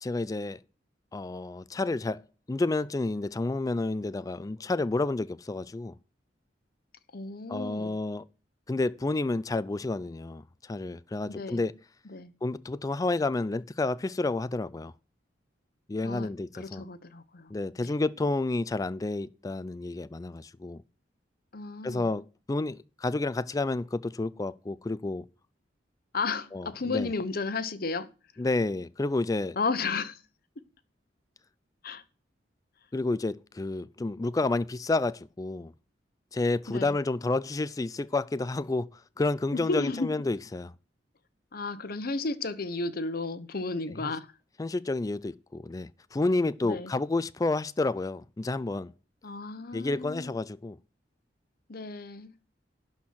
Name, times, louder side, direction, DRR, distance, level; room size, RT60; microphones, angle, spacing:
voice 1, 0.0-0.6 1.1-2.2 2.5-6.0 7.5-8.2 8.7-11.8 12.4-14.9 15.9-16.8 17.5-20.8 21.8-25.3 26.5-27.1 28.4-29.6 32.9-35.7 36.3-40.7 44.0-44.1 44.6-48.9 49.7-50.8, left 2 dB, 20° left, 0.3 m, -30 dB
voice 2, 7.1-8.0 11.3-11.6 12.1-12.3 16.0-17.5 17.8-17.9 21.5-22.1 26.1-28.1 29.6-30.2 31.8-32.0 36.7-36.9 39.5-40.1 41.5-44.3 46.6-46.9 49.2-50.4 51.7-52.3, left 3 dB, 55° left, 0.9 m, -33 dB
11.5 x 4.4 x 6.2 m
head